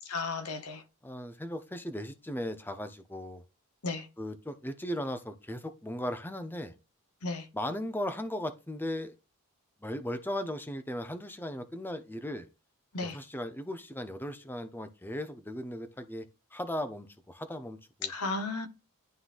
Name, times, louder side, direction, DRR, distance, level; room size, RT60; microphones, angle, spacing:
voice 1, 0.1-0.8 3.8-4.1 7.2-7.5 12.9-13.2 18.0-18.7, left 3 dB, 80° left, 1.2 m, -34 dB
voice 2, 1.0-3.4 4.2-6.7 7.5-9.1 9.8-12.5 13.0-16.3 16.5-18.1, left 1 dB, 10° left, 0.8 m, -37 dB
11.5 x 3.9 x 2.6 m
head